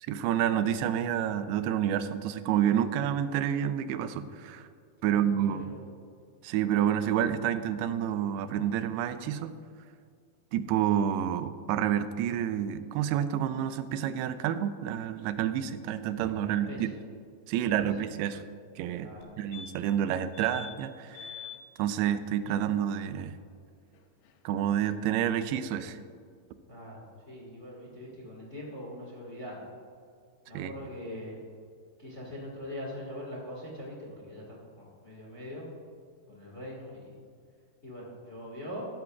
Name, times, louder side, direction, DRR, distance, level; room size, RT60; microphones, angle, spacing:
voice 1, 0.0-4.7 5.0-5.7 6.4-9.6 10.5-16.9 17.5-18.4 18.8-19.1 19.4-21.3 21.8-23.3 24.5-26.0 30.5-30.7, right 10 dB, 90° right, 11 dB, 2.6 m, -29 dB
voice 2, 5.0-5.8 16.4-16.9 17.6-17.7 19.0-19.3 26.7-29.7 30.5-31.4 32.0-35.7 36.3-37.2 37.8-38.9, left 1 dB, 40° left, -4 dB, 1.0 m, -42 dB
sound 1, 19.2-19.3 19.5-20.0 20.3-20.8 21.1-21.6 24.0-24.1 24.3-24.4, left 9 dB, 80° left, 2.8 m, -44 dB
14.5 x 12.5 x 2.4 m, 2.2 s
omnidirectional pair, 4.5 m